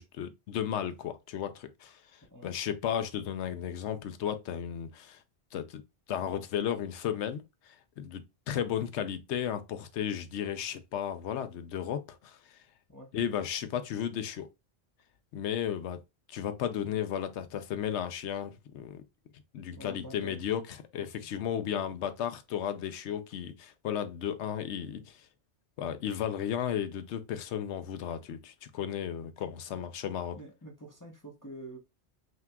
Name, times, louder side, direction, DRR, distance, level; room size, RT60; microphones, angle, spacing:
voice 1, 0.0-5.2 5.5-5.8 6.1-12.6 13.1-14.5 15.3-16.0 16.3-19.0 19.5-25.3 25.8-30.4, left 9 dB, 80° left, 0.9 m, -34 dB
voice 2, 19.8-20.4 21.2-21.3 29.7-29.8 30.3-31.8, right 1 dB, 20° left, 0.8 m, -47 dB
5.7 x 2.9 x 2.3 m
omnidirectional pair, 1.1 m